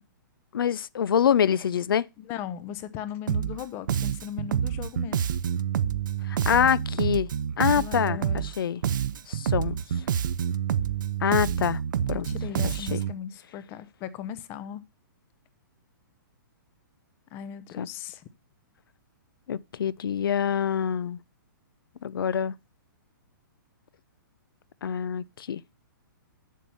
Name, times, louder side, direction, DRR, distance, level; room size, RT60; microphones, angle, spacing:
voice 1, 0.5-2.1 6.3-7.3 7.6-8.8 9.3-9.8 11.2-11.8 12.1-12.3 12.6-13.0 17.8-17.9 19.5-21.2 22.0-22.5 24.8-25.6, left 8 dB, 90° left, 0.5 m, -25 dB
voice 2, 2.2-5.2 7.7-8.5 12.1-14.8 17.3-18.3, left 9 dB, 20° left, 0.6 m, -38 dB
Bass guitar, 3.3-3.6 3.9-8.6 8.8-13.2, right 9 dB, 65° right, 0.6 m, -28 dB
7.4 x 7.2 x 5.5 m
hypercardioid pair, 165°, 11 cm